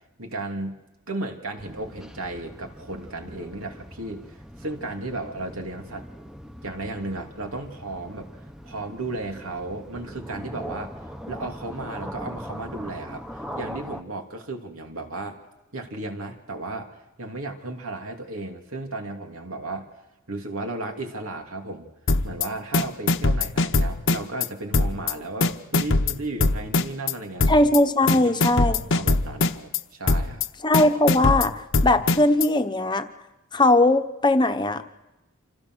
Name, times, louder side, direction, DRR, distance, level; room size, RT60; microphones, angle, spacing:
voice 1, 0.2-0.8 1.1-4.2 4.6-6.1 6.6-8.3 8.6-11.0 11.3-13.2 13.6-15.4 15.7-16.9 17.2-19.9 20.3-21.9 22.2-27.5 28.0-30.5, right 2 dB, 90° right, 3 dB, 3.0 m, -34 dB
sound 1, 1.6-14.0, equal, 5° right, 0.9 m, -40 dB
sound 2, 22.1-22.5 22.7-24.5 24.7-25.1 25.4-27.1 27.4-27.8 28.1-29.8 30.1-30.5 30.7-32.5, left 3 dB, 60° left, 0.9 m, -21 dB
voice 2, 27.5-28.8 30.6-31.5 31.8-33.1 33.5-34.8, left 2 dB, 20° left, 8 dB, 1.0 m, -19 dB
29.0 x 26.5 x 6.4 m, 0.97 s
head